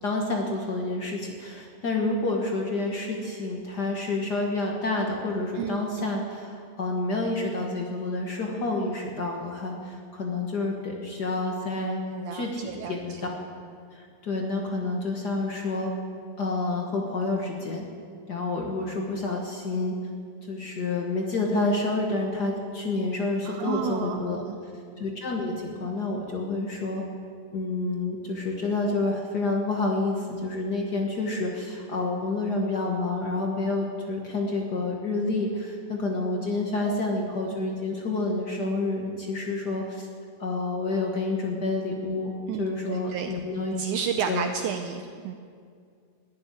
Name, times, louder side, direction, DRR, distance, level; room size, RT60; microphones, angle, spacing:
voice 1, 0.0-12.0 12.3-13.3 13.9-15.9 16.4-17.8 18.3-19.9 20.4-24.4 25.0-27.0 27.5-40.1 40.4-42.3 42.6-43.8 44.2-44.5, left 2 dB, 70° left, 0 dB, 0.9 m, -29 dB
voice 2, 12.1-12.9 23.5-24.6 42.5-43.4 43.8-45.4, right 7 dB, 80° right, 6 dB, 1.8 m, -32 dB
16.5 x 7.3 x 9.9 m, 2.2 s
omnidirectional pair, 4.0 m